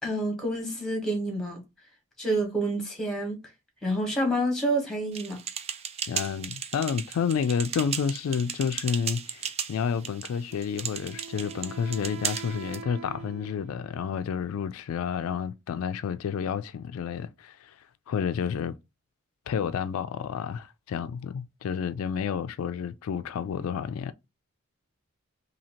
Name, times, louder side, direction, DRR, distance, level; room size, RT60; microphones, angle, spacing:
voice 1, 0.0-1.6 2.2-3.4 3.8-5.4, right 1 dB, 5° left, 1.2 m, -28 dB
sound 1, 5.1-12.8, right 7 dB, 30° right, 0.3 m, -36 dB
voice 2, 6.1-18.7 19.5-24.1, left 7 dB, 80° left, 0.3 m, -30 dB
Wind instrument woodwind instrument, 10.5-14.1, right 7 dB, 75° right, 0.6 m, -44 dB
2.8 x 2.8 x 4.3 m
head